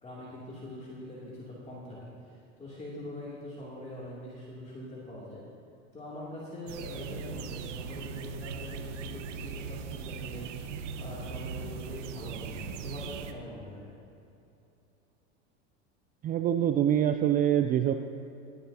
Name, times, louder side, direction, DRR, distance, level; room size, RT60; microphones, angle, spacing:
voice 1, 0.0-5.4 5.9-10.6 10.9-13.9, left 1 dB, 20° left, -7 dB, 2.7 m, -43 dB
sound 1, 6.7-13.3, right 6 dB, 80° right, 0.9 m, -39 dB
voice 2, 16.2-17.9, right 10 dB, 25° right, 8 dB, 0.3 m, -25 dB
17.5 x 10.5 x 2.8 m, 2.8 s
hypercardioid pair, 105°, 36 cm